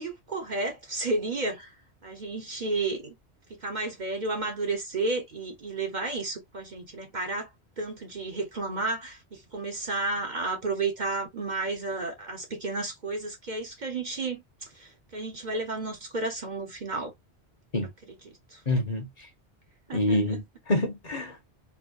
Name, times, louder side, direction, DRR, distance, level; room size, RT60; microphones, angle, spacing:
voice 1, 0.0-1.7 2.0-3.2 3.5-7.5 7.8-17.1 18.5-18.6 19.9-20.4, right 3 dB, 45° right, 0.9 m, -32 dB
voice 2, 18.7-19.3 19.9-21.5, left 1 dB, 40° left, 1.1 m, -27 dB
4.4 x 2.2 x 2.4 m
omnidirectional pair, 1.1 m